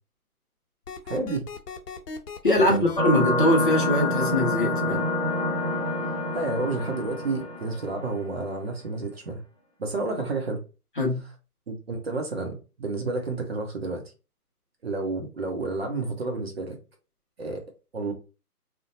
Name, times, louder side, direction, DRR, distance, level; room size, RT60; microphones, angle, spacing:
sound 1, 0.9-3.0, left 5 dB, 90° left, 0.7 m, -38 dB
voice 1, 1.1-1.5 2.6-2.9 6.1-9.4 9.8-10.6 11.7-14.0 14.8-16.8 17.4-17.6 17.9-18.1, right 3 dB, 40° right, 0.6 m, -30 dB
voice 2, 2.4-5.0 11.0-11.2, left 1 dB, 35° left, 0.5 m, -22 dB
sound 2, 3.0-8.2, left 1 dB, ahead, 0.9 m, -27 dB
2.5 x 2.1 x 2.5 m
figure-of-eight pair, 150°, 46 cm